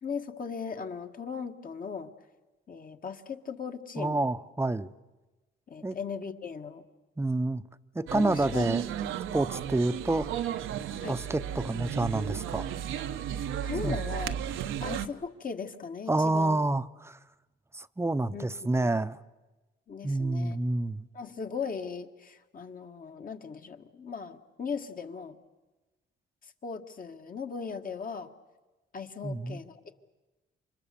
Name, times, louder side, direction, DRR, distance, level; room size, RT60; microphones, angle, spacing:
voice 1, 0.0-2.1 2.7-4.3 5.7-6.8 8.1-8.6 11.0-11.2 13.3-14.4 14.8-16.6 18.3-18.9 19.9-20.6 21.1-25.4 26.4-28.3 28.9-29.9, left 5 dB, 45° left, 1.7 m, -38 dB
voice 2, 4.0-4.9 5.8-6.0 7.2-7.6 7.9-8.8 9.3-10.3 11.1-12.7 13.8-14.0 16.1-17.2 17.7-19.2 20.0-21.1 29.2-29.6, right 2 dB, 15° right, 0.8 m, -28 dB
sound 1, 8.1-15.1, right 9 dB, 85° right, 1.0 m, -34 dB
28.5 x 25.0 x 7.0 m
cardioid pair, 90°, 20 cm